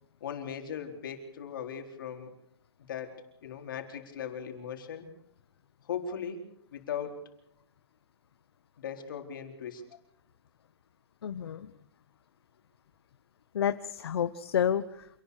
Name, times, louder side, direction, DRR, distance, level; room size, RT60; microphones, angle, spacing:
voice 1, 0.2-2.3 2.9-5.1 5.8-6.4 6.7-7.2 8.8-9.8, left 7 dB, 50° left, 4 dB, 4.2 m, -38 dB
voice 2, 11.2-11.7 13.5-15.2, left 9 dB, 70° left, 11 dB, 1.1 m, -30 dB
27.5 x 19.0 x 6.7 m, 0.75 s
hypercardioid pair, 180°, 14 cm